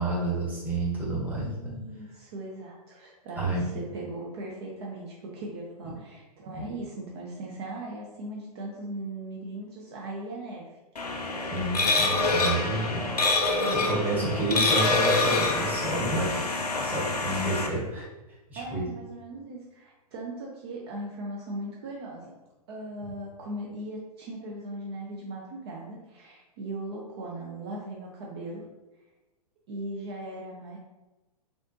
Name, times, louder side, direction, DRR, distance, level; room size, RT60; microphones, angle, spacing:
voice 1, 0.0-1.8 3.4-3.7 6.5-6.7 11.5-13.2 13.5-16.5 16.8-18.1 18.5-18.9, right 1 dB, 10° right, -6 dB, 1.0 m, -30 dB
voice 2, 1.4-10.7 12.8-13.3 13.6-14.3 18.5-22.3 22.7-28.6 29.7-30.8, right 2 dB, 40° right, -2 dB, 0.5 m, -38 dB
sound 1, 11.0-17.7, left 3 dB, 80° left, 0.6 m, -26 dB
3.5 x 2.4 x 2.5 m, 1.1 s
figure-of-eight pair, 110°, 20 cm